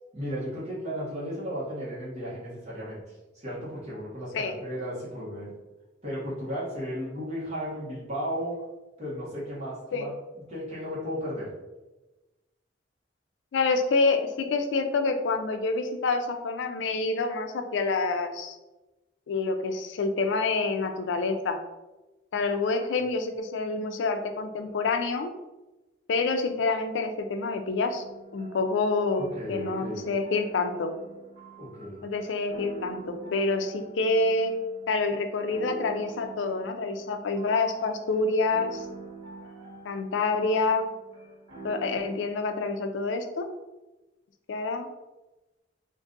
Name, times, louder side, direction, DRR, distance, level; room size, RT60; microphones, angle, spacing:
voice 1, 0.1-5.5 6.0-8.6 9.0-10.1 10.3-11.5 29.2-30.0 31.6-32.0, equal, 35° right, -7 dB, 1.2 m, -35 dB
voice 2, 13.5-18.6 19.3-21.6 22.3-25.3 26.1-28.0 28.3-30.9 32.0-34.6 34.9-38.9 39.8-40.9 41.6-43.5 44.5-44.9, left 3 dB, 80° left, 7 dB, 0.4 m, -27 dB
sound 1, 27.9-42.3, right 4 dB, 75° right, 1.3 m, -45 dB
3.8 x 2.5 x 2.5 m, 1.1 s
head